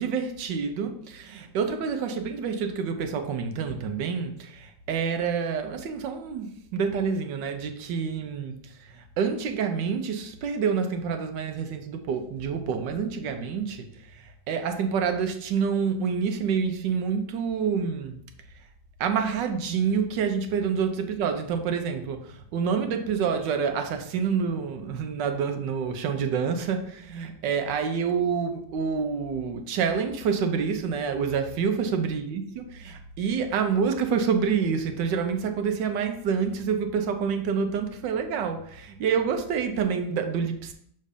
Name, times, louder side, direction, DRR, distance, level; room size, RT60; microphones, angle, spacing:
voice 1, 0.0-18.2 19.0-40.7, right 6 dB, 80° right, 6 dB, 1.3 m, -27 dB
6.5 x 3.2 x 5.1 m, 0.67 s
omnidirectional pair, 2.0 m